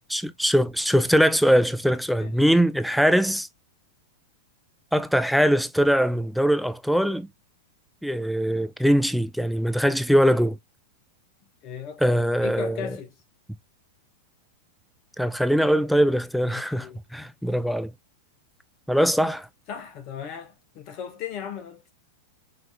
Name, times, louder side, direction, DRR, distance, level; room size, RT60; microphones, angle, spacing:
voice 1, 0.1-3.5 4.9-7.3 8.0-10.6 12.0-12.9 15.2-17.9 18.9-19.5, equal, ahead, 0.4 m, -22 dB
voice 2, 11.6-13.1 16.5-17.0 19.7-21.9, left 8 dB, 45° left, 1.3 m, -37 dB
5.1 x 3.0 x 2.3 m
figure-of-eight pair, 95°, 0 cm